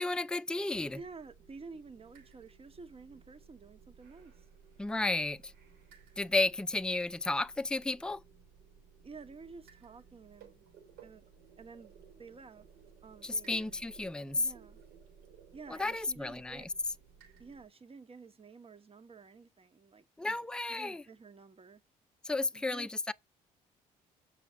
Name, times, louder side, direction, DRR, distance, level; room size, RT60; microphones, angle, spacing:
voice 1, 0.0-1.0 4.8-5.5 6.2-8.2 13.2-14.5 15.7-16.6 20.2-21.0 22.2-23.1, left 2 dB, 5° left, 0.5 m, -33 dB
sound 1, 0.7-17.7, right 6 dB, 90° right, 3.7 m, -58 dB
voice 2, 0.9-4.5 9.0-10.6 11.0-11.2 11.6-12.7 13.0-13.6 14.3-14.8 15.5-16.7 17.4-20.4 20.7-21.8 22.5-22.9, right 4 dB, 35° right, 1.3 m, -51 dB
7.0 x 5.9 x 5.5 m
hypercardioid pair, 55°, 17 cm